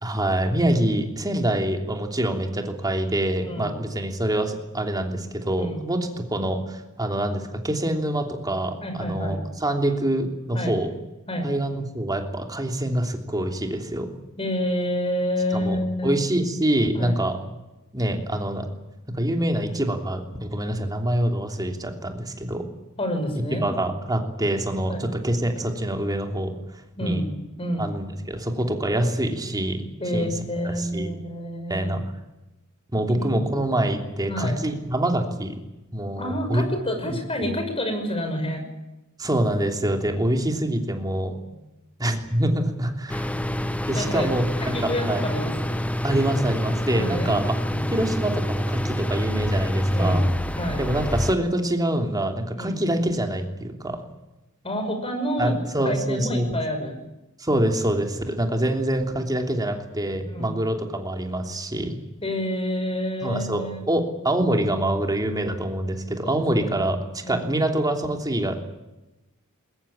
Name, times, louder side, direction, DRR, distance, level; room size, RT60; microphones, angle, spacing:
voice 1, 0.0-10.9 11.4-14.1 15.5-17.4 17.9-18.7 19.1-22.6 23.5-26.6 27.0-27.3 27.8-30.3 30.6-31.1 31.7-32.0 32.9-35.5 35.9-36.7 37.4-37.5 39.2-41.3 42.0-43.3 43.9-45.3 46.0-47.5 47.9-50.2 50.8-54.0 55.4-56.5 57.4-61.9 63.2-67.0 67.3-68.6, right 1 dB, 20° right, 3 dB, 3.1 m, -25 dB
voice 2, 3.4-3.7 5.6-5.8 8.8-9.4 10.5-10.7 11.3-11.5 14.4-16.1 16.9-17.2 23.0-23.7 24.9-25.1 27.0-27.3 27.6-27.9 30.0-31.9 33.1-33.5 34.3-34.6 36.2-38.6 41.5-41.6 43.9-44.3 44.6-45.7 46.9-47.3 47.7-47.9 49.9-50.3 50.6-50.8 52.6-52.8 54.6-55.6 55.8-57.0 60.3-60.6 62.2-63.9 66.2-66.3 66.6-66.7 67.2-67.4, equal, 25° left, 5 dB, 6.1 m, -28 dB
sound 1, 43.1-51.4, equal, 5° left, 0.8 m, -26 dB
22.0 x 20.5 x 8.9 m, 1.0 s
head